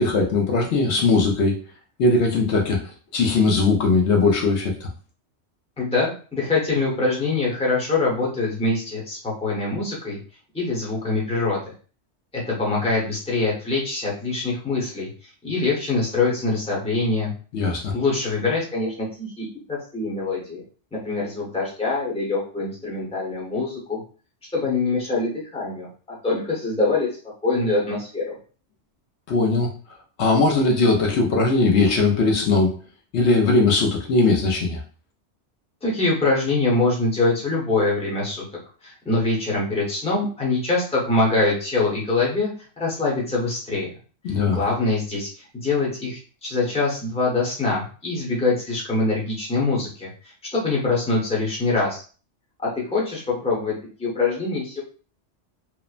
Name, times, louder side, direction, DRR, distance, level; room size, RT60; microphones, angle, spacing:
voice 1, 0.0-1.6 2.0-2.8 3.1-4.9 17.5-17.9 29.3-29.7 30.2-32.7 33.1-34.8 44.2-44.6, left 3 dB, 70° left, 1 dB, 0.9 m, -19 dB
voice 2, 5.8-10.2 10.5-11.7 12.3-17.3 17.9-20.6 20.9-24.0 24.5-27.1 27.4-28.4 35.8-38.4 38.8-42.5 42.8-43.9 44.5-50.1 50.5-52.0 52.6-54.8, left 3 dB, 5° left, -5 dB, 0.7 m, -24 dB
3.0 x 2.0 x 2.4 m, 0.39 s
omnidirectional pair, 1.2 m